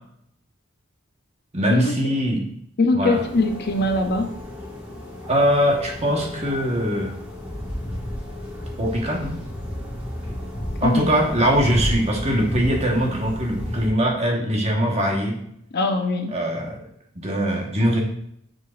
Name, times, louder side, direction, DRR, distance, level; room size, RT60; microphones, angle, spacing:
voice 1, 1.5-2.4 2.9-3.2 5.3-7.2 8.8-9.4 10.8-15.4 16.3-16.8 17.1-18.0, equal, 30° right, 0 dB, 1.4 m, -22 dB
voice 2, 2.8-4.4 10.8-11.2 15.7-16.3, left 2 dB, 50° left, 4 dB, 0.7 m, -22 dB
sound 1, 3.1-13.9, left 1 dB, 5° right, 1.7 m, -32 dB
9.6 x 4.9 x 2.5 m, 0.70 s
head